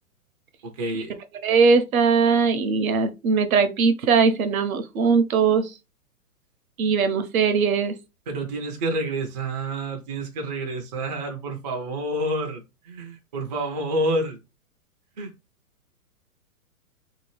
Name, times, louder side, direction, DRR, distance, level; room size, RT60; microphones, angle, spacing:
voice 1, 0.8-1.1 8.3-14.4 15.2-15.3, right 1 dB, 30° right, 0.4 m, -28 dB
voice 2, 1.4-5.7 6.8-7.9, right 5 dB, 65° right, 0.7 m, -20 dB
2.7 x 2.4 x 3.0 m
hypercardioid pair, 155°, 45 cm